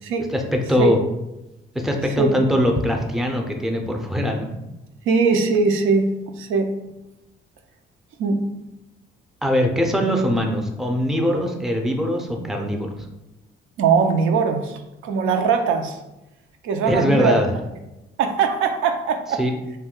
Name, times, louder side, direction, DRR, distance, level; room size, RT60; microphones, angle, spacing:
voice 1, 0.3-1.0 1.8-4.5 9.4-12.9 16.9-17.5 19.4-19.5, equal, ahead, 3 dB, 0.4 m, -21 dB
voice 2, 5.1-6.7 8.2-8.4 13.8-14.8 15.0-16.0 16.6-17.4 18.2-19.4, right 5 dB, 85° right, 5 dB, 0.4 m, -20 dB
2.6 x 2.2 x 3.7 m, 0.94 s
cardioid pair, 90°, 20 cm